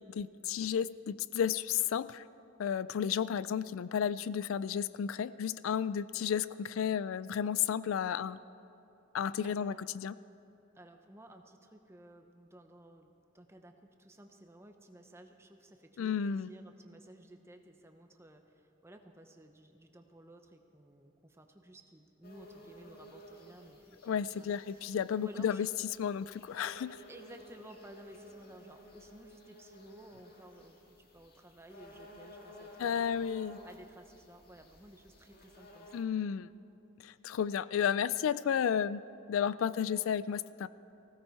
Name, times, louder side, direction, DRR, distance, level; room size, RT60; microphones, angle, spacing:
voice 1, 0.0-2.2 2.6-8.4 9.1-10.1 16.0-16.5 24.0-25.7 26.0-27.0 32.8-33.6 35.9-36.5 37.0-39.0 39.3-40.7, left 8 dB, 75° left, 17 dB, 0.3 m, -32 dB
voice 2, 9.4-9.8 10.7-24.6 25.1-25.7 27.1-33.3 33.6-36.1, right 1 dB, 15° right, 5 dB, 0.9 m, -55 dB
sound 1, 22.2-36.0, left 1 dB, 50° left, 1.8 m, -55 dB
19.0 x 16.0 x 4.7 m, 2.8 s
head